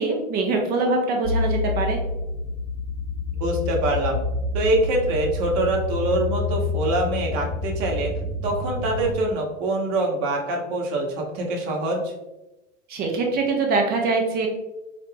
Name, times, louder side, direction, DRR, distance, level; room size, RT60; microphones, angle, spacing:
voice 1, 0.0-2.0 12.9-14.5, right 3 dB, 25° right, 2 dB, 0.5 m, -23 dB
sound 1, 1.2-9.1, left 3 dB, 5° left, 1.2 m, -28 dB
voice 2, 3.4-4.2 4.5-8.1 8.4-12.1, right 2 dB, 45° right, 0 dB, 0.9 m, -24 dB
3.9 x 2.3 x 3.3 m, 0.99 s
supercardioid pair, 135°, 40 cm